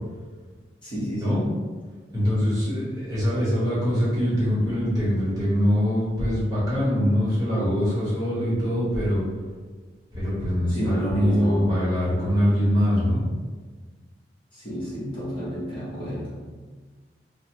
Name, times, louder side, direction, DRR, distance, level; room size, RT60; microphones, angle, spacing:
voice 1, 0.8-1.5 10.7-11.7 14.5-16.3, equal, 30° left, -9 dB, 1.0 m, -30 dB
voice 2, 2.1-9.2 10.1-13.2, equal, 20° right, -10 dB, 1.1 m, -23 dB
3.1 x 2.0 x 3.0 m, 1.4 s
head